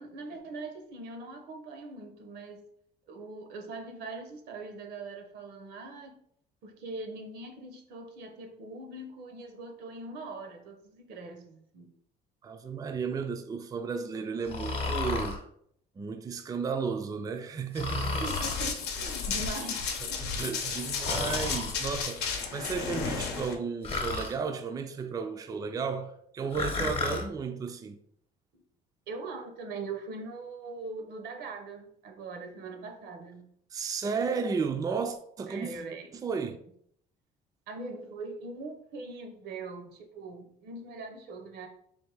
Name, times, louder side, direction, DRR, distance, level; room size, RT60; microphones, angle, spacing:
voice 1, 0.0-2.7 3.1-6.2 6.6-11.9 18.2-20.2 28.5-28.6 29.1-33.5 35.5-36.1 37.7-41.7, right 3 dB, 75° right, 0.8 m, -41 dB
voice 2, 12.4-15.4 16.0-18.2 20.2-28.0 33.7-35.8 36.1-36.6, right 5 dB, 20° right, 0.3 m, -33 dB
Breathing, 14.5-15.4 17.7-18.7 21.0-21.7 23.8-24.4 26.5-27.3, left 3 dB, 35° left, 0.8 m, -32 dB
Run, 18.2-23.5, left 5 dB, 80° left, 0.7 m, -33 dB
3.5 x 2.6 x 4.5 m
cardioid pair, 110°, 17 cm